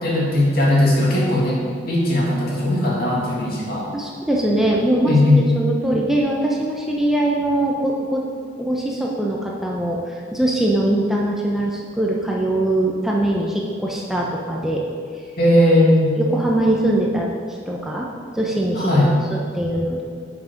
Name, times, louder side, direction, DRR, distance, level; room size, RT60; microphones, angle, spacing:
voice 1, 0.0-3.9 5.1-5.4 15.4-16.2 18.8-19.1, left 1 dB, 55° left, -5 dB, 2.4 m, -18 dB
voice 2, 3.9-8.2 8.6-14.8 16.2-18.1 18.3-18.9 19.3-20.0, right 1 dB, ahead, -3 dB, 0.7 m, -22 dB
9.4 x 5.9 x 5.2 m, 2.1 s
head